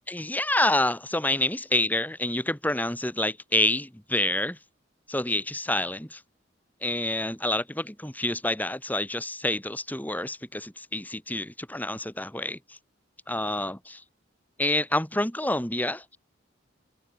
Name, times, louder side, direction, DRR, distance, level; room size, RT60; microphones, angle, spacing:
voice 1, 0.1-4.6 5.1-6.2 6.8-12.6 13.3-14.0 14.6-16.0, left 1 dB, 10° left, 2.2 m, -28 dB
head